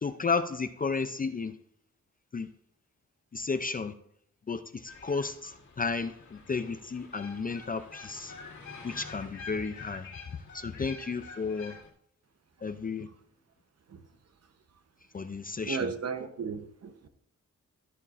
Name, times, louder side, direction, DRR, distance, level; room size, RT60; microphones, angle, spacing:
voice 1, 0.0-1.6 2.3-2.5 3.3-3.9 4.5-8.3 8.8-10.1 10.5-11.8 12.6-13.1 15.1-15.9, left 4 dB, 30° left, 10 dB, 0.4 m, -33 dB
sound 1, 4.9-11.9, left 4 dB, 65° left, 2.2 m, -47 dB
voice 2, 15.7-17.1, right 5 dB, 55° right, 9 dB, 0.9 m, -35 dB
12.5 x 11.0 x 2.5 m, 0.70 s
wide cardioid pair, 150°, 31 cm